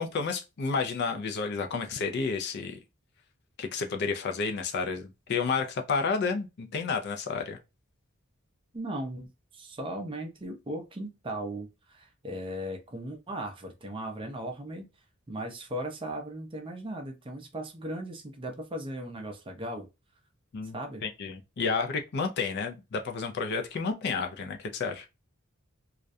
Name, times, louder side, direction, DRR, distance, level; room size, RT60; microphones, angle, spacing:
voice 1, 0.0-2.8 3.6-7.6 20.5-25.0, left 5 dB, 50° left, 0.4 m, -31 dB
voice 2, 8.7-14.9 15.3-19.9 20.7-21.0, right 1 dB, 25° right, 0.5 m, -37 dB
2.3 x 2.1 x 2.6 m
head